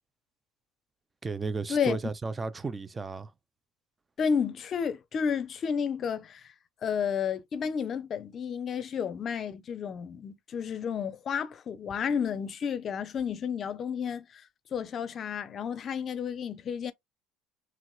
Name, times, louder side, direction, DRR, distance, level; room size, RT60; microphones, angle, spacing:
voice 1, 1.2-3.3, right 4 dB, 20° right, 0.5 m, -34 dB
voice 2, 4.2-6.5 6.8-14.4 14.7-16.9, left 7 dB, 40° left, 0.5 m, -31 dB
3.0 x 2.9 x 2.3 m
hypercardioid pair, 85°, 0 cm